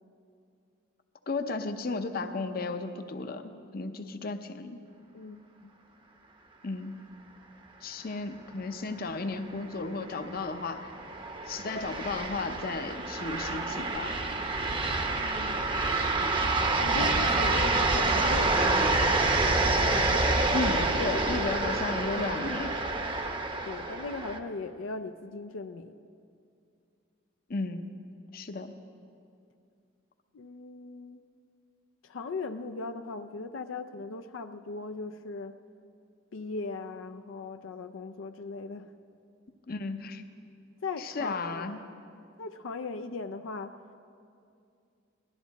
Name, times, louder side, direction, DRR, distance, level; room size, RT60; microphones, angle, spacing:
voice 1, 1.3-4.8 6.6-7.0 7.8-10.9 11.5-14.1 20.5-22.8 27.5-27.9 28.3-28.7 39.7-40.2 41.0-41.8, left 3 dB, 50° left, 7 dB, 0.7 m, -34 dB
voice 2, 5.1-5.7 15.1-15.6 16.7-19.3 23.6-25.9 30.3-31.2 32.0-35.6 36.3-38.9 40.8-41.8 42.4-43.7, left 3 dB, 90° left, 7 dB, 0.5 m, -38 dB
sound 1, 9.5-24.4, right 2 dB, 25° right, 0.7 m, -28 dB
18.5 x 12.5 x 4.1 m, 2.4 s
head